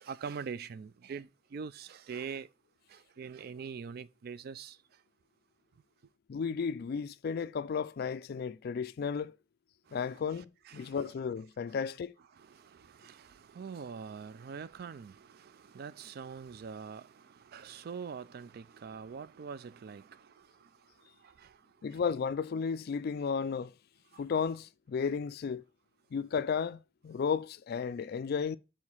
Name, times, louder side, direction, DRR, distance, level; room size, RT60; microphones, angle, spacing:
voice 1, 0.0-2.5 2.9-4.8 9.9-10.2 10.7-11.0 11.7-11.8 12.4-20.5 21.4-21.5, right 6 dB, 50° right, 0.3 m, -44 dB
voice 2, 6.3-9.4 9.9-12.1 21.8-23.7 24.2-25.6 26.1-28.6, left 6 dB, 50° left, 0.3 m, -33 dB
4.8 x 4.5 x 5.5 m
head